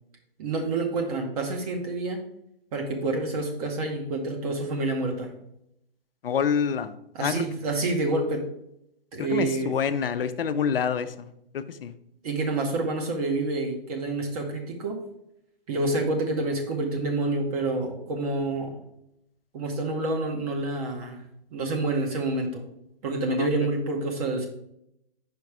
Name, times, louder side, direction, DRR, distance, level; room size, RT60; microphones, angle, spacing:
voice 1, 0.4-2.2 2.7-5.3 7.1-8.4 9.1-9.7 12.2-15.0 15.7-18.8 19.5-21.2 21.5-22.6 23.0-24.5, right 2 dB, 40° right, 2 dB, 1.1 m, -28 dB
voice 2, 6.2-6.9 7.2-7.4 9.2-11.9 23.4-23.5, left 7 dB, 70° left, 12 dB, 0.6 m, -27 dB
5.2 x 4.8 x 4.7 m, 0.78 s
hypercardioid pair, 135°, 29 cm